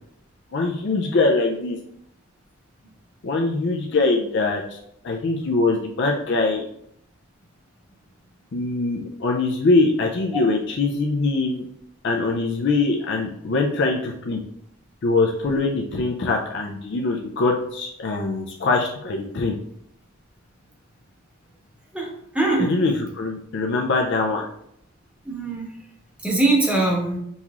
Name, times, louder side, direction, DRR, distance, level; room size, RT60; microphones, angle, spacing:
voice 1, 0.5-1.8 3.2-4.8 5.0-6.7 8.5-11.6 12.0-14.4 15.0-19.5 22.6-24.5, left 3 dB, 55° left, 1 dB, 0.4 m, -23 dB
voice 2, 21.9-22.7 25.2-25.7 26.2-27.2, right 2 dB, 5° right, -3 dB, 0.9 m, -22 dB
5.4 x 3.0 x 2.4 m, 0.73 s
head